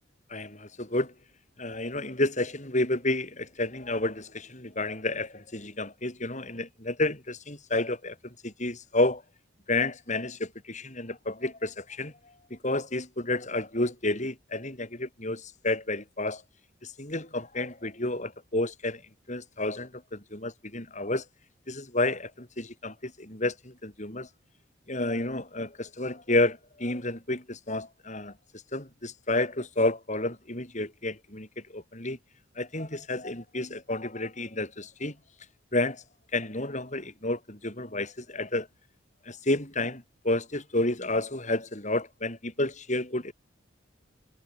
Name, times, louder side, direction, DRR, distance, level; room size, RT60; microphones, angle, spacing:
voice 1, 0.3-1.1 1.6-9.2 9.7-12.1 12.5-16.4 16.8-19.0 19.3-21.2 21.7-24.3 24.9-28.3 28.7-32.2 32.6-35.1 35.7-36.0 36.3-38.7 39.2-43.3, left 2 dB, 40° left, 6.2 m, -30 dB
head